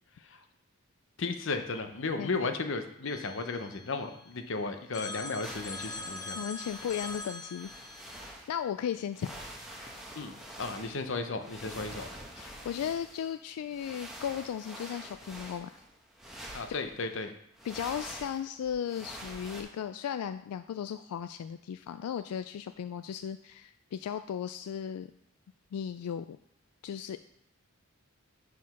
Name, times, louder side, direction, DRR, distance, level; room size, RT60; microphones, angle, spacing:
voice 1, 1.2-6.4 10.1-12.1 16.5-17.3, left 3 dB, 55° left, 7 dB, 0.7 m, -34 dB
Telephone, 3.1-4.5 4.9-8.3, left 3 dB, 15° left, 0.4 m, -43 dB
sound 1, 5.4-8.6 9.1-17.1 17.5-19.6, right 1 dB, ahead, 1.0 m, -46 dB
voice 2, 6.4-7.7 8.5-9.4 12.4-15.7 17.7-25.1 25.7-26.4 26.8-27.2, left 8 dB, 90° left, 11 dB, 0.3 m, -36 dB
5.8 x 4.9 x 5.8 m, 0.71 s
head